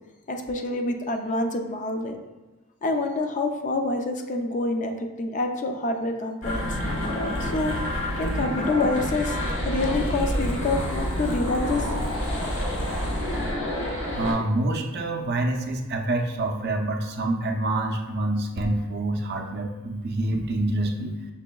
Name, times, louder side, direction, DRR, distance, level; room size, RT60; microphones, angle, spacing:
voice 1, 0.3-2.2 2.8-6.8 7.4-7.7 8.2-12.0, left 2 dB, 35° left, 4 dB, 0.4 m, -27 dB
sound 1, 6.4-14.3, left 1 dB, 60° left, 1.2 m, -28 dB
voice 2, 14.1-21.2, right 2 dB, 50° right, 3 dB, 0.5 m, -26 dB
5.9 x 3.7 x 2.3 m, 1.2 s
head